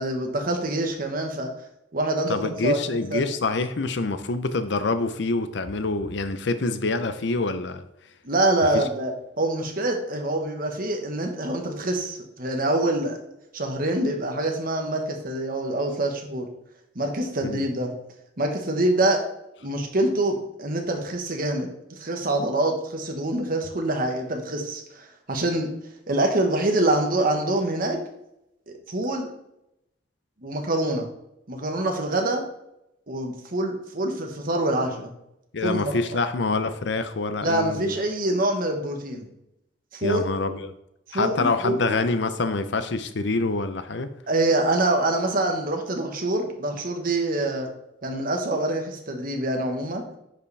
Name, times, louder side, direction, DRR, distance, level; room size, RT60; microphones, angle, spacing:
voice 1, 0.0-1.5 1.9-3.3 8.2-9.1 9.4-13.2 13.5-16.5 16.9-17.9 18.4-19.2 19.6-25.7 26.1-28.0 28.7-29.3 30.4-31.1 31.5-32.4 33.1-35.1 35.6-36.0 37.4-39.3 39.9-40.2 41.1-42.0 44.3-47.7 48.0-50.0, right 1 dB, 50° right, 3 dB, 1.3 m, -25 dB
voice 2, 2.3-7.8 8.7-8.8 17.4-17.7 35.5-37.9 40.0-40.7 41.1-44.1, left 3 dB, 70° left, 11 dB, 0.6 m, -26 dB
10.0 x 4.9 x 3.4 m, 0.82 s
head